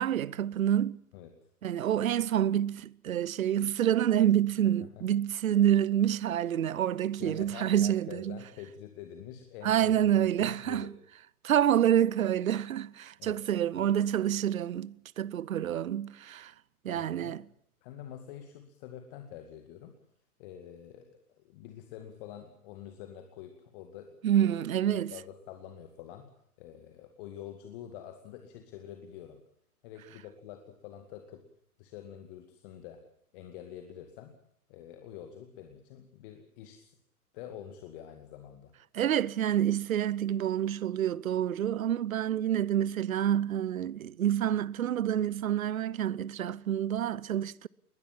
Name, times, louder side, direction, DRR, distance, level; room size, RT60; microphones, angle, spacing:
voice 1, 0.0-1.0 1.6-8.4 9.6-10.9 11.4-16.5 16.8-17.4 24.2-25.1 38.9-47.7, right 10 dB, 60° right, 0.8 m, -28 dB
voice 2, 7.2-10.9 13.2-13.4 13.8-13.9 16.9-17.4 17.8-19.9 20.4-24.7 24.9-26.3 26.6-29.4 29.8-31.4 31.8-33.0 33.3-34.3 34.7-36.9 37.3-38.7, left 10 dB, 35° left, 2.3 m, -47 dB
21.5 x 20.0 x 7.4 m
figure-of-eight pair, 115°, 46 cm